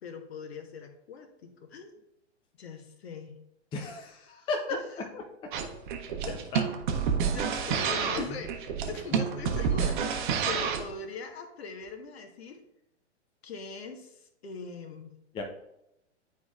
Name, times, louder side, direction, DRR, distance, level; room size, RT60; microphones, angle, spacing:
voice 1, 0.0-2.0 2.6-3.4 7.3-8.5 8.9-12.6 13.4-15.2, left 4 dB, 60° left, 5 dB, 1.2 m, -41 dB
voice 2, 3.7-5.5 6.3-6.6 8.2-8.4 9.1-9.2 15.3-15.4, left 3 dB, 15° left, 2 dB, 0.6 m, -35 dB
sound 1, 5.5-10.9, right 7 dB, 40° right, 0.9 m, -29 dB
9.5 x 4.7 x 2.4 m, 0.84 s
figure-of-eight pair, 110°, 36 cm